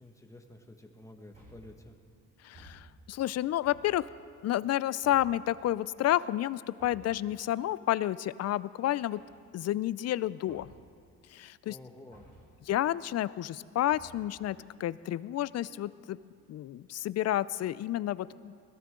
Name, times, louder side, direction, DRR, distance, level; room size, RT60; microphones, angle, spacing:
voice 1, 0.0-2.0 11.6-12.3, left 1 dB, 10° left, 4 dB, 1.6 m, -51 dB
sound 1, 1.3-1.9 2.5-3.2 3.6-4.2 5.0-5.5 6.8-7.3 8.8-9.6 10.5-11.0 12.1-12.6 13.9-14.4, right 1 dB, 30° right, 4.8 m, -56 dB
voice 2, 2.4-4.1 4.4-9.2 9.5-10.7 11.3-11.8 12.7-16.2 16.5-18.5, left 13 dB, 60° left, 18 dB, 0.4 m, -30 dB
21.0 x 16.0 x 3.8 m, 2.2 s
cardioid pair, 90°, 30 cm